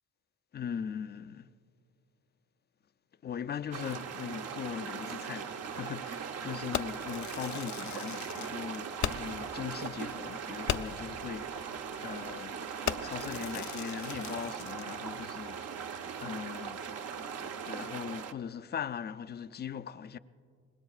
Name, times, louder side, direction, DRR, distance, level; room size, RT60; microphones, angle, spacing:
voice 1, 0.5-1.5 3.2-11.7 12.0-15.9 16.2-16.9 17.4-20.2, left 8 dB, 35° left, 0.4 m, -40 dB
sound 1, 3.7-18.3, right 6 dB, 55° right, 0.8 m, -39 dB
Fireworks, 6.7-9.5 9.8-9.9 10.2-10.3 10.7-11.1 11.7-11.9 12.3-12.5 12.9-14.9, left 10 dB, 70° left, 0.6 m, -37 dB
25.5 x 20.5 x 2.4 m
cardioid pair, 90°, 30 cm